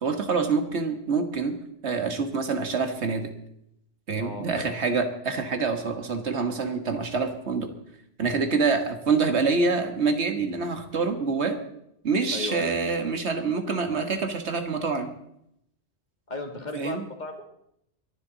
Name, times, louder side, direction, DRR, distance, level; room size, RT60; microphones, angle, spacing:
voice 1, 0.0-1.5 1.8-3.3 4.1-7.7 8.2-11.6 12.0-15.1 16.8-17.0, right 4 dB, 70° right, 6 dB, 1.8 m, -26 dB
voice 2, 4.2-4.7 12.3-12.8 16.3-17.4, left 3 dB, 40° left, 4 dB, 2.1 m, -35 dB
24.0 x 11.0 x 4.0 m, 0.76 s
omnidirectional pair, 1.2 m